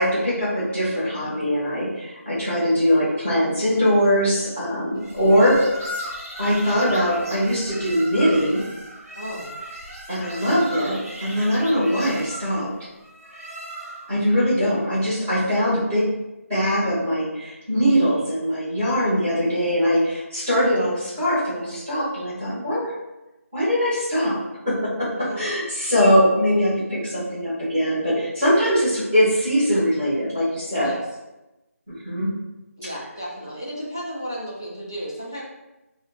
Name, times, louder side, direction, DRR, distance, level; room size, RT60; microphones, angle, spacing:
voice 1, 0.0-5.6 6.4-8.6 10.1-12.7 14.1-16.1 16.5-22.9 23.5-24.4 24.6-30.9 31.9-32.3, equal, 10° right, -14 dB, 0.8 m, -21 dB
voice 2, 4.9-5.4 9.1-9.5 10.4-10.5 25.1-25.4 30.8-31.0 32.8-35.4, equal, 15° left, -6 dB, 0.3 m, -34 dB
sound 1, 5.0-14.2, equal, 75° right, 1.0 m, -36 dB
3.7 x 2.1 x 2.4 m, 0.99 s
figure-of-eight pair, 180°, 8 cm